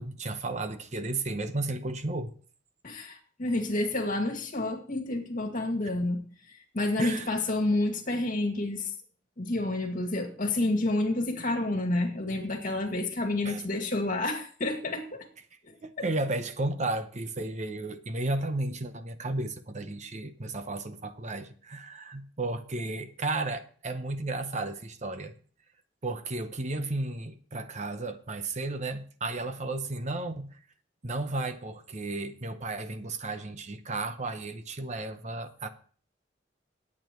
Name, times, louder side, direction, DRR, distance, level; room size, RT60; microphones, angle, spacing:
voice 1, 0.0-2.3 7.0-7.3 13.4-13.6 15.8-25.3 26.0-30.5 31.0-35.7, right 2 dB, 40° right, 0.9 m, -33 dB
voice 2, 2.8-6.2 6.7-8.9 9.4-15.3 15.6-16.1, left 2 dB, 45° left, 2.2 m, -29 dB
19.5 x 8.7 x 3.1 m
head